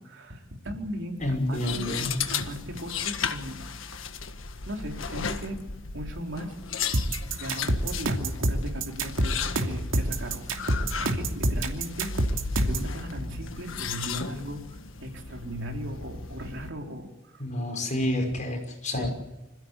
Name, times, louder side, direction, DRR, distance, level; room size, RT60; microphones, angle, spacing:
voice 1, 0.0-1.9 2.3-3.6 4.7-5.6 5.9-6.6 7.4-9.4 9.6-10.5 11.0-17.4 18.0-18.3 18.9-19.1, equal, 65° right, 2 dB, 4.0 m, -37 dB
sound 1, 1.2-16.7, left 5 dB, 75° left, 1.5 m, -35 dB
voice 2, 1.2-2.1 17.4-19.1, left 1 dB, 40° left, 3 dB, 5.9 m, -29 dB
sound 2, 6.9-12.9, right 1 dB, 85° right, 2.8 m, -26 dB
26.5 x 16.0 x 8.4 m, 1.0 s
head